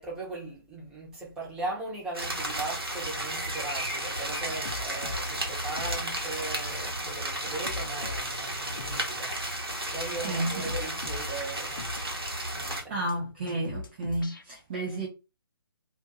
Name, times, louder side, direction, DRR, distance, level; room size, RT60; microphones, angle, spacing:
voice 1, 0.0-9.3 9.9-11.8 12.5-13.0, right 2 dB, 5° right, 0.8 m, -38 dB
sound 1, 2.1-12.8, right 1 dB, 80° right, 0.9 m, -33 dB
sound 2, 4.5-5.3 5.6-6.0 6.3-6.4 6.7-6.8 7.1-7.2 7.5-8.3 8.7-9.0 9.3-9.4 9.7-9.8 10.1-10.2 10.5-11.3 11.7-12.0 12.3-12.4 12.7-12.8 13.1-13.2 13.5-14.4, left 3 dB, 60° left, 0.5 m, -39 dB
voice 2, 10.2-10.7 12.9-15.1, right 1 dB, 25° right, 0.4 m, -31 dB
2.4 x 2.1 x 2.9 m
figure-of-eight pair, 140°, 13 cm